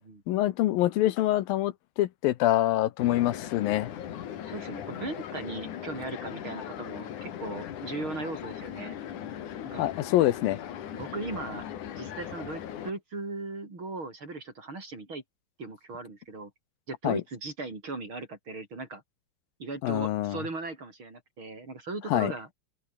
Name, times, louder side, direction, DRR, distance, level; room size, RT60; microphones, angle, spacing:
voice 1, 0.3-3.9 9.8-10.6 17.0-17.2 19.8-20.4 22.1-22.3, left 15 dB, 80° left, 2.7 m, -25 dB
sound 1, 3.0-12.9, left 10 dB, 60° left, 3.1 m, -39 dB
voice 2, 4.5-9.0 9.6-9.9 10.9-11.7 12.0-15.2 15.6-16.5 16.9-19.0 19.6-22.5, right 3 dB, 35° right, 5.7 m, -38 dB
open air
omnidirectional pair, 4.2 m